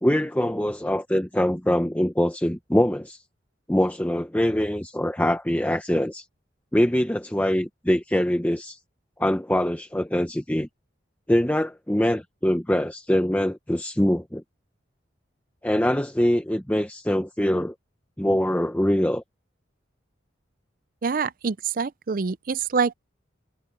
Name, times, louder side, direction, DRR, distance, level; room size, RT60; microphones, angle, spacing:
voice 1, 0.0-3.2 3.7-6.2 6.7-8.8 9.2-10.7 11.3-14.4 15.6-17.7 18.2-19.2, equal, 10° left, 0.8 m, -23 dB
voice 2, 21.0-22.9, right 5 dB, 50° right, 0.5 m, -26 dB
head